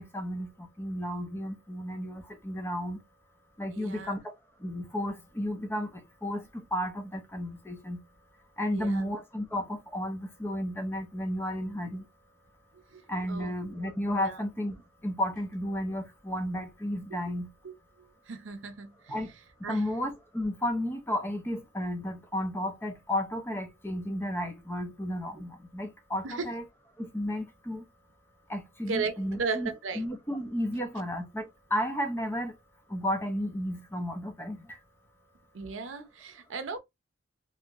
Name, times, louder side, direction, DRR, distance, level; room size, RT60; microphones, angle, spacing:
voice 1, 0.0-3.0 3.6-4.2 4.6-5.9 6.2-8.0 8.6-12.0 13.1-14.8 15.0-17.5 19.1-19.3 19.7-26.6 27.0-27.8 28.5-32.5 32.9-34.8, equal, 10° left, 0.6 m, -33 dB
voice 2, 3.7-4.1 8.7-9.1 12.9-13.0 13.3-14.4 17.1-17.3 17.6-17.7 18.3-19.3 19.6-19.8 26.2-26.5 28.9-30.1 35.5-36.8, right 4 dB, 80° right, 0.6 m, -36 dB
3.1 x 2.8 x 2.4 m
head